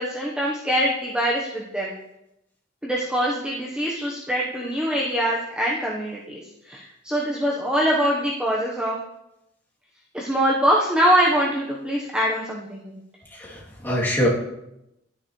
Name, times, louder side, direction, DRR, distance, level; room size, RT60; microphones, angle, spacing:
voice 1, 0.0-1.9 2.8-6.4 6.7-9.0 10.1-13.0, equal, 5° right, -4 dB, 1.1 m, -23 dB
voice 2, 13.3-14.3, equal, 10° left, -7 dB, 3.0 m, -24 dB
11.5 x 9.9 x 3.2 m, 0.85 s
head